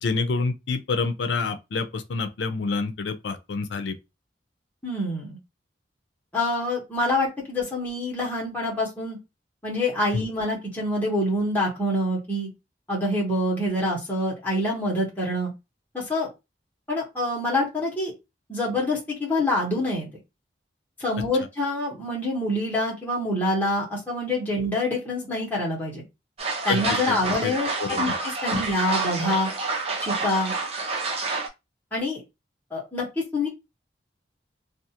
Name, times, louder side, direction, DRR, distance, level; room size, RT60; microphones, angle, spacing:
voice 1, 0.0-3.9 10.1-10.3 26.7-27.2 27.4-27.5 27.8-28.1 28.5-28.6, left 4 dB, 85° left, 0.5 m, -28 dB
voice 2, 4.8-5.4 6.3-9.2 9.6-12.5 12.9-15.5 15.9-16.3 16.9-18.1 18.5-20.1 21.0-26.0 26.6-28.1 28.4-29.5 30.0-30.5 31.9-32.2 32.7-33.0 33.3-33.5, left 1 dB, 10° left, 1.0 m, -26 dB
sound 1, 26.4-31.5, right 3 dB, 35° right, 0.7 m, -28 dB
2.4 x 2.3 x 2.8 m
head